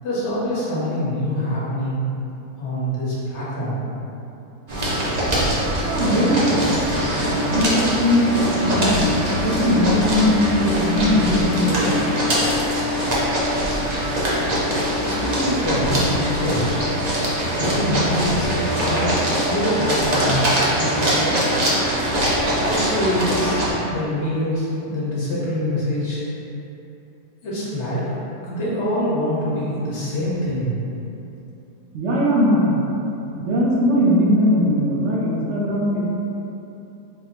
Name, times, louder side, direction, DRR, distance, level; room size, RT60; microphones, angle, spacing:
voice 1, 0.0-2.1 2.6-3.8 13.6-13.7 15.0-16.8 17.6-21.4 22.5-26.2 27.4-28.0 28.4-30.8, equal, 50° left, -8 dB, 1.1 m, -25 dB
sound 1, 4.7-23.7, equal, 85° right, 0.3 m, -22 dB
voice 2, 5.8-12.1 31.9-32.8 33.4-36.1, equal, 65° right, -6 dB, 0.7 m, -20 dB
3.6 x 2.1 x 4.1 m, 2.9 s
omnidirectional pair, 1.8 m